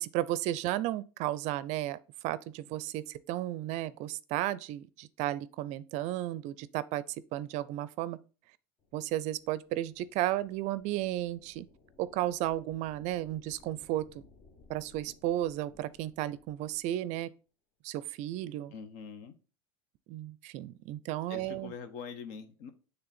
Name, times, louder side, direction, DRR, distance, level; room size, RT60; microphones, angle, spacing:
voice 1, 0.0-7.0 7.3-8.2 8.9-11.7 12.0-14.0 14.7-17.3 17.8-18.7 20.1-21.7, right 14 dB, 55° right, 0.4 m, -33 dB
sound 1, 8.8-16.9, left 4 dB, 40° left, 1.2 m, -61 dB
voice 2, 18.7-19.3 21.3-22.7, left 6 dB, 65° left, 1.0 m, -43 dB
6.8 x 3.3 x 4.2 m
hypercardioid pair, 95°, 14 cm